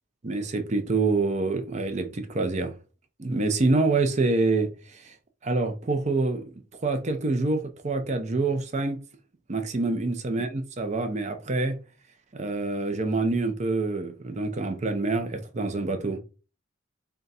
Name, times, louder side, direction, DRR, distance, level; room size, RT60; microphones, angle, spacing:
voice 1, 0.2-2.7 3.2-5.1 5.4-9.0 9.5-11.8 12.3-16.2, right 3 dB, 35° right, 0.6 m, -26 dB
3.7 x 2.3 x 4.0 m
head